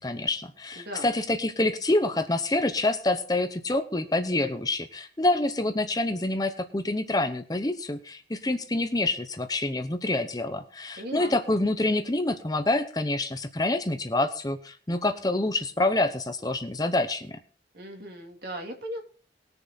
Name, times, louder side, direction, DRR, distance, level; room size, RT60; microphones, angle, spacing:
voice 1, 0.0-17.4, left 2 dB, 20° left, 9 dB, 0.8 m, -27 dB
voice 2, 0.8-1.1 11.0-11.3 17.7-19.0, equal, 60° right, 2 dB, 2.9 m, -37 dB
20.0 x 6.8 x 4.1 m, 0.41 s
head